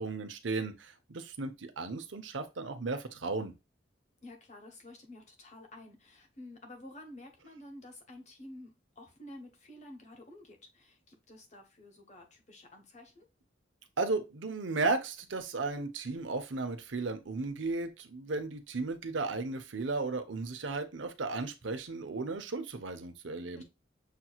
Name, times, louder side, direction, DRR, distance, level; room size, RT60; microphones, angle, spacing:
voice 1, 0.0-3.5 14.0-23.6, right 3 dB, 75° right, 0.8 m, -35 dB
voice 2, 4.2-13.3 23.5-23.6, left 1 dB, 35° left, 1.2 m, -51 dB
6.7 x 3.0 x 2.3 m
head